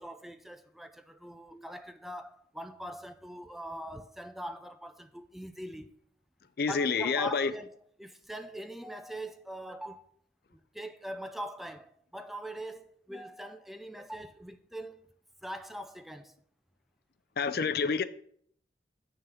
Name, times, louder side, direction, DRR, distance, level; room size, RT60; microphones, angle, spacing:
voice 1, 0.0-5.9 6.7-7.7 8.0-10.1 10.5-15.0 15.4-16.4, right 1 dB, ahead, 0.3 m, -42 dB
voice 2, 6.6-7.5 17.4-18.0, left 5 dB, 60° left, 0.5 m, -28 dB
9.4 x 3.9 x 5.7 m
head